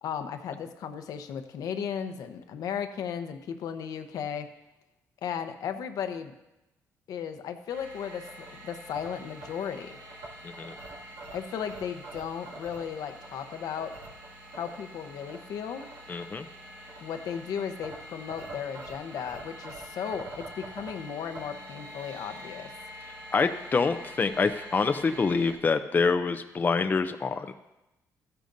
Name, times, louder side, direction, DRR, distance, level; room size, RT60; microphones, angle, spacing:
voice 1, 0.0-4.5 5.2-6.3 7.1-10.0 11.3-13.9 14.5-15.8 17.0-22.7, left 8 dB, 75° left, 8 dB, 0.9 m, -35 dB
sound 1, 7.7-25.5, right 1 dB, 90° right, 2.1 m, -45 dB
voice 2, 16.1-16.5 23.3-27.5, left 4 dB, 30° left, 8 dB, 0.5 m, -26 dB
14.0 x 10.0 x 2.6 m, 0.96 s
cardioid pair, 90°, 6 cm